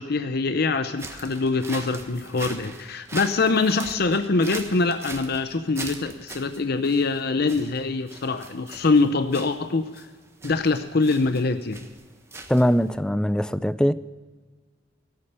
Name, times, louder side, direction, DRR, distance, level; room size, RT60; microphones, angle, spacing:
voice 1, 0.0-10.0 10.4-11.8, left 3 dB, 55° left, 0.7 m, -24 dB
sound 1, 0.9-13.0, right 3 dB, 15° right, 1.4 m, -41 dB
voice 2, 12.5-13.9, equal, 5° left, 0.4 m, -21 dB
17.0 x 8.8 x 6.8 m
head